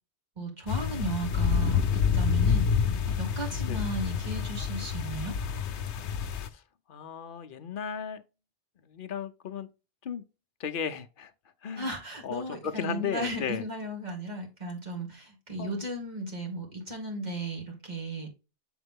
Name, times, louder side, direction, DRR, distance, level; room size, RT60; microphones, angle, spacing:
voice 1, 0.4-5.3 11.8-18.3, right 2 dB, 40° right, 2.3 m, -35 dB
sound 1, 0.7-6.5, left 7 dB, 80° left, 1.0 m, -28 dB
voice 2, 6.9-8.2 8.8-9.7 10.0-10.2 10.6-11.3 11.6-11.9 12.2-13.6 15.6-15.7, left 7 dB, 55° left, 0.8 m, -35 dB
7.9 x 3.9 x 3.5 m
omnidirectional pair, 1.1 m